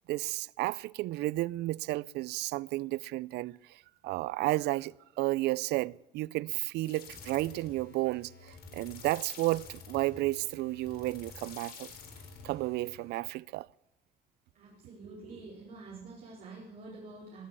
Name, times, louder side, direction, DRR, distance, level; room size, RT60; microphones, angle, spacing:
voice 1, 0.0-11.9 12.4-13.7, right 18 dB, 80° right, 0.4 m, -32 dB
sound 1, 6.8-13.1, left 4 dB, 65° left, 4.1 m, -49 dB
voice 2, 14.5-17.5, right 3 dB, 55° right, 4.4 m, -47 dB
20.5 x 7.5 x 8.4 m
cardioid pair, 110°, 17 cm